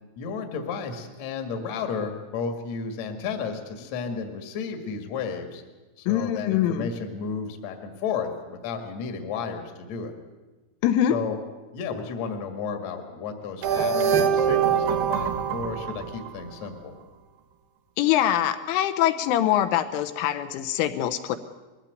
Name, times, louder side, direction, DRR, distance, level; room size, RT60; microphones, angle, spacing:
voice 1, 0.2-5.6 6.0-10.1 11.1-11.4 11.7-16.9, left 5 dB, 55° left, 5 dB, 2.1 m, -33 dB
voice 2, 6.1-6.9 10.8-11.2 18.0-21.4, left 11 dB, 80° left, 9 dB, 3.2 m, -23 dB
sound 1, 13.6-16.7, right 7 dB, 65° right, 2.3 m, -24 dB
21.0 x 15.0 x 9.3 m, 1.2 s
omnidirectional pair, 5.8 m